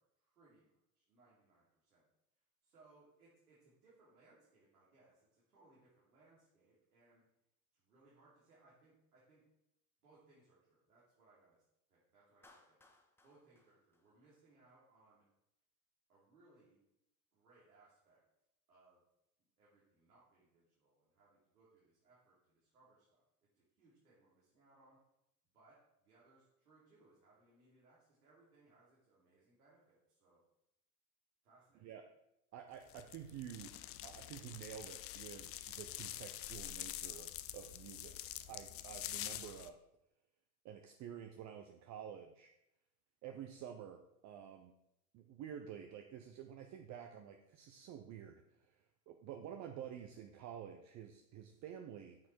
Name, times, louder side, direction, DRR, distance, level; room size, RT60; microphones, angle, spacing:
voice 1, 0.0-2.0 2.6-7.2 7.7-9.4 10.0-11.6 11.9-12.8 13.2-15.2 16.1-16.8 17.3-18.2 18.7-19.0 19.6-23.2 23.5-25.0 25.5-30.4 31.4-31.9, right 2 dB, 85° right, -8 dB, 3.2 m, -68 dB
Clapping, 12.4-14.7, left 2 dB, 5° left, 1.0 m, -68 dB
voice 2, 32.5-33.7 34.0-39.7 40.6-42.5 43.2-44.7 45.1-52.2, right 9 dB, 40° right, 5 dB, 0.8 m, -50 dB
sound 1, 32.9-39.7, left 13 dB, 30° left, 0.5 m, -46 dB
8.8 x 6.3 x 4.5 m, 0.83 s
hypercardioid pair, 90°, 45 cm